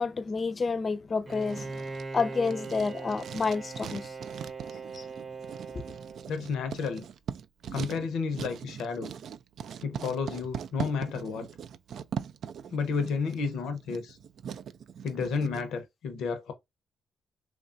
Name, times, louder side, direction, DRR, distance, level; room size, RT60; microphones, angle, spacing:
voice 1, 0.0-1.7 2.1-4.1 4.9-5.0, left 4 dB, 40° left, 0.4 m, -29 dB
Bowed string instrument, 1.3-6.8, right 4 dB, 35° right, 0.7 m, -41 dB
Writing, 1.3-15.6, right 8 dB, 70° right, 0.3 m, -41 dB
voice 2, 6.3-7.0 7.7-9.1 9.8-11.5 12.7-14.2 15.0-16.5, left 5 dB, 80° left, 0.7 m, -31 dB
3.1 x 2.2 x 2.5 m
cardioid pair, 70°, 0 cm